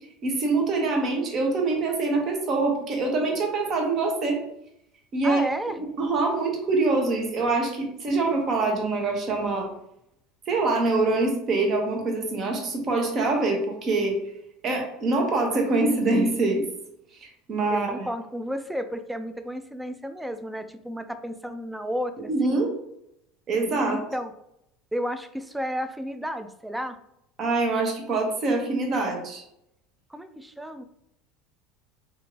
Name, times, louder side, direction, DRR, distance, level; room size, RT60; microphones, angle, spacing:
voice 1, 0.2-4.4 5.1-5.4 6.0-9.7 10.5-14.2 14.6-16.7 17.5-18.1 22.3-22.7 23.5-24.0 27.4-29.4, right 3 dB, 45° right, 2 dB, 0.9 m, -24 dB
voice 2, 5.2-5.8 17.7-22.6 23.9-24.3 24.9-27.0 30.1-30.8, equal, 5° right, 9 dB, 0.3 m, -32 dB
2.7 x 2.5 x 3.0 m, 0.77 s
hypercardioid pair, 85°, 0 cm